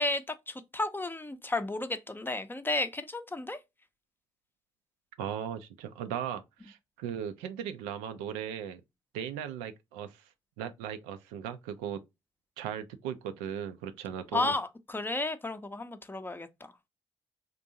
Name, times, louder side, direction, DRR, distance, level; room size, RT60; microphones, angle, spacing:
voice 1, 0.0-3.6 14.3-16.5, left 2 dB, 15° left, 0.5 m, -32 dB
voice 2, 5.2-8.8 9.1-10.2 10.6-12.0 12.6-14.5, right 9 dB, 70° right, 0.4 m, -37 dB
3.7 x 2.6 x 2.6 m
figure-of-eight pair, 40°, 14 cm